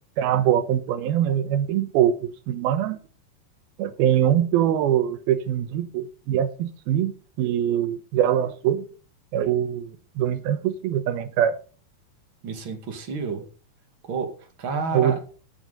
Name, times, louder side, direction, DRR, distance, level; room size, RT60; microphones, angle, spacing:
voice 1, 0.2-3.0 3.8-7.1 7.4-8.9 9.3-9.9 10.2-11.6 14.9-15.2, right 10 dB, 75° right, 2.7 m, -23 dB
voice 2, 12.4-13.4 14.1-15.2, right 4 dB, 40° right, 2.2 m, -30 dB
16.0 x 7.7 x 4.1 m
omnidirectional pair, 4.7 m